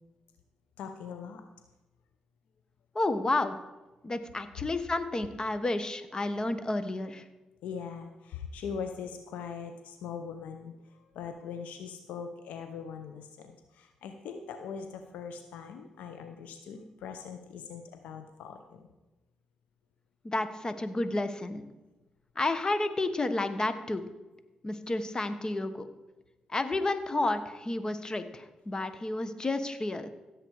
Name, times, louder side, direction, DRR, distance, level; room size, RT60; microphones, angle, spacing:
voice 1, 0.8-1.4 7.6-18.9, left 6 dB, 85° left, 6 dB, 0.8 m, -41 dB
voice 2, 2.9-3.6 4.0-7.2 20.2-21.6 22.4-24.0 24.6-25.9 26.5-30.1, left 2 dB, 30° left, 11 dB, 1.2 m, -31 dB
16.0 x 7.7 x 4.8 m, 1.1 s
supercardioid pair, 60°, 2 cm